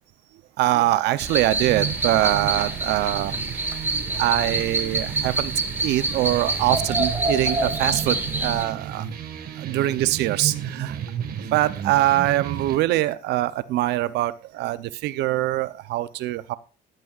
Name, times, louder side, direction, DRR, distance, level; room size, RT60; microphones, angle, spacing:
voice 1, 0.6-3.3 4.1-5.5 5.8-9.0 9.6-11.0 11.4-16.6, right 15 dB, 80° right, 15 dB, 0.7 m, -23 dB
sound 1, 1.2-8.6, right 2 dB, 10° right, 1.9 m, -27 dB
sound 2, 1.6-12.8, right 9 dB, 65° right, 1.7 m, -33 dB
14.5 x 11.0 x 2.5 m, 0.34 s
cardioid pair, 110°, 17 cm